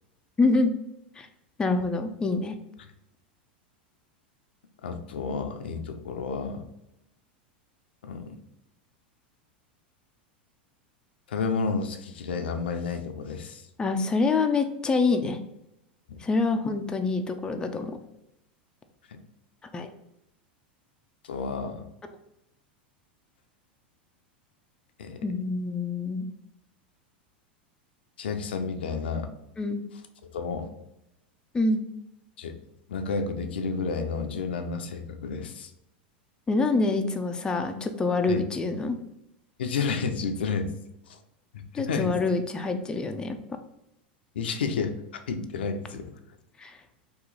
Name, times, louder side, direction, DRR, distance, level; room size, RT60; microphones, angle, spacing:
voice 1, 0.4-0.7 1.2-1.3 1.6-2.6 13.8-15.4 16.2-18.0 19.7-19.9 25.2-26.2 29.6-29.8 31.5-31.8 36.5-39.0 41.7-43.4 46.6-46.8, left 3 dB, 15° left, 6 dB, 0.4 m, -26 dB
voice 2, 4.8-6.6 8.0-8.4 11.3-13.7 16.1-16.2 19.1-19.2 21.2-21.9 25.0-25.2 28.2-29.3 30.2-30.7 32.4-32.6 32.9-35.7 38.3-38.4 39.6-40.7 41.1-41.2 41.5-42.2 44.3-45.0 45.3-46.1, left 5 dB, 85° left, 6 dB, 0.5 m, -31 dB
2.9 x 2.4 x 3.7 m, 0.84 s
hypercardioid pair, 110°, 6 cm